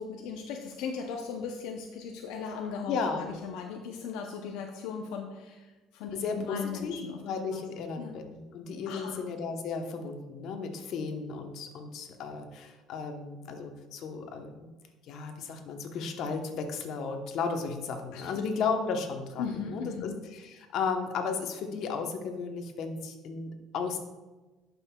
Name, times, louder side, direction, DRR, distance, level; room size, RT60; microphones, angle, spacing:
voice 1, 0.0-5.7 5.9-7.2 7.5-7.6 8.0-8.2 8.9-9.2 18.1-18.3 19.4-20.2, left 6 dB, 85° left, 2 dB, 0.6 m, -38 dB
voice 2, 2.9-3.4 6.1-6.9 7.2-14.7 15.1-24.0, left 5 dB, 60° left, 4 dB, 0.9 m, -34 dB
11.5 x 5.4 x 2.3 m, 1.2 s
cardioid pair, 130°, 0 cm